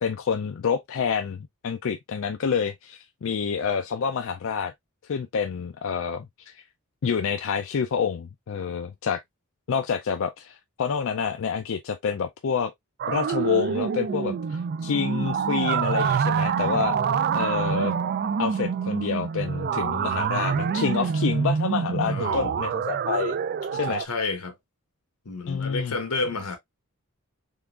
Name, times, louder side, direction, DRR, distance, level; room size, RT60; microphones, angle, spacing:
voice 1, 0.0-4.7 5.0-6.6 7.0-9.2 9.7-12.7 13.1-14.3 14.8-17.0 17.3-17.9 18.4-23.4 23.7-24.0 25.5-26.0, left 6 dB, 60° left, 0.4 m, -28 dB
sound 1, 13.0-24.0, right 6 dB, 45° right, 0.3 m, -26 dB
voice 2, 16.6-17.3 21.9-22.6 23.7-24.5 25.2-26.6, left 3 dB, 90° left, 1.1 m, -31 dB
3.7 x 3.4 x 2.3 m
head